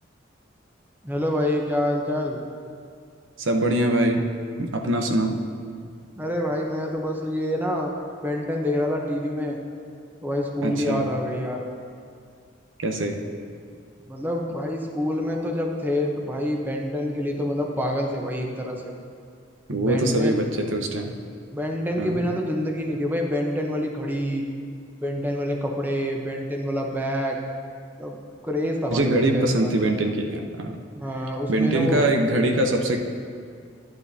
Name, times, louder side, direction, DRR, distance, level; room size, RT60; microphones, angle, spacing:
voice 1, 1.0-2.4 6.2-7.9 8.2-9.6 10.2-11.7 14.1-18.9 19.7-20.4 21.5-24.4 25.0-27.4 28.0-28.2 28.4-29.7 30.9-32.1, left 1 dB, 10° right, 1 dB, 0.8 m, -27 dB
voice 2, 3.4-4.3 4.6-5.4 10.6-11.1 12.8-13.2 19.7-21.1 22.0-22.2 28.9-30.8 31.5-33.0, right 1 dB, 85° right, 4 dB, 0.8 m, -23 dB
12.5 x 10.5 x 2.8 m, 2.2 s
head